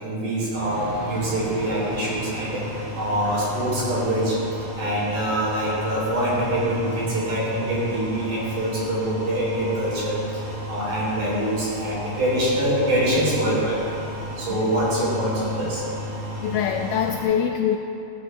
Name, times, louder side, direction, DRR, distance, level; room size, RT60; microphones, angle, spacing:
voice 1, 0.0-2.6 3.0-4.4 4.8-10.2 10.7-13.8 14.4-15.8, right 1 dB, 60° right, -6 dB, 5.0 m, -24 dB
sound 1, 0.6-17.2, equal, 80° right, 5.2 m, -33 dB
voice 2, 16.4-17.8, left 8 dB, 80° left, 4 dB, 1.9 m, -24 dB
15.0 x 13.5 x 3.4 m, 2.8 s
omnidirectional pair, 4.1 m